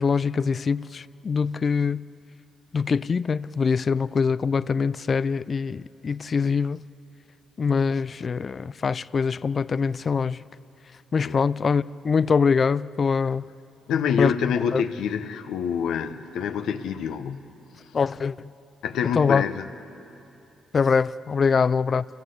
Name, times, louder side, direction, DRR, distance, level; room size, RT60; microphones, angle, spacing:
voice 1, 0.0-2.1 2.7-6.9 7.6-10.4 11.1-13.4 14.2-14.3 14.7-14.8 17.9-18.5 19.2-19.4 20.7-22.0, left 5 dB, 45° left, 0.4 m, -23 dB
voice 2, 13.9-17.5 18.8-19.7, left 7 dB, 80° left, 1.0 m, -26 dB
28.5 x 15.5 x 7.9 m
supercardioid pair, 65°, 0 cm